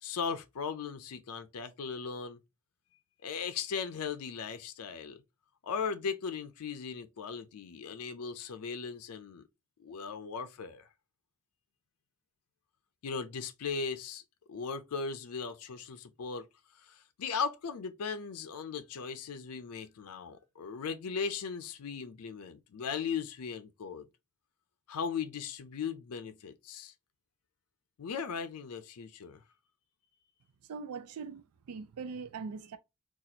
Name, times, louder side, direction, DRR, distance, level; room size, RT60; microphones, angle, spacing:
voice 1, 0.0-2.4 3.2-5.2 5.6-9.4 9.8-10.9 13.0-14.2 14.5-16.4 16.8-24.1 24.9-26.9 28.0-29.4, left 6 dB, 90° left, 0.5 m, -38 dB
voice 2, 30.6-32.8, right 5 dB, 90° right, 0.4 m, -41 dB
4.0 x 2.4 x 2.8 m
head